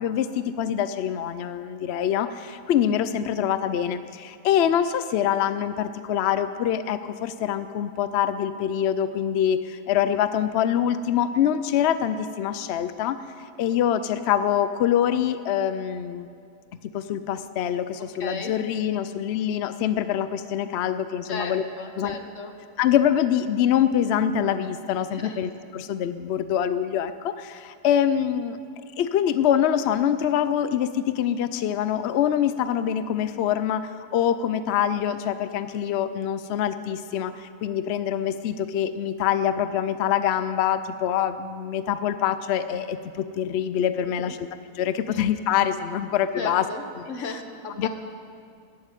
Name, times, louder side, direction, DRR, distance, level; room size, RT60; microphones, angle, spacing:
voice 1, 0.0-13.2 13.6-16.3 16.9-21.6 22.0-22.1 22.8-28.6 29.0-44.5 44.7-46.6 47.3-47.4 47.8-47.9, left 9 dB, 70° left, 12 dB, 0.6 m, -25 dB
voice 2, 18.2-18.5 18.9-19.0 21.3-22.5 25.1-25.4 44.2-44.4 45.1-45.2 46.3-47.9, left 3 dB, 55° left, 5 dB, 1.6 m, -35 dB
14.5 x 8.7 x 9.7 m, 2.3 s
omnidirectional pair, 1.6 m